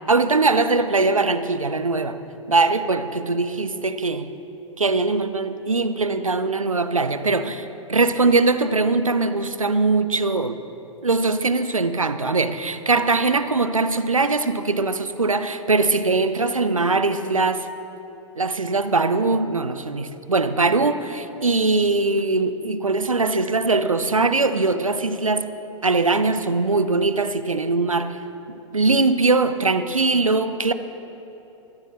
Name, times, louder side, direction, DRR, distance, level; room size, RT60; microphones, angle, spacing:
voice 1, 0.1-2.2 2.5-4.3 4.8-10.6 11.0-17.7 18.4-25.5 25.8-28.2 28.7-30.7, right 3 dB, 85° right, 11 dB, 0.8 m, -21 dB
21.5 x 14.5 x 3.2 m, 3.0 s
figure-of-eight pair, 100°, 17 cm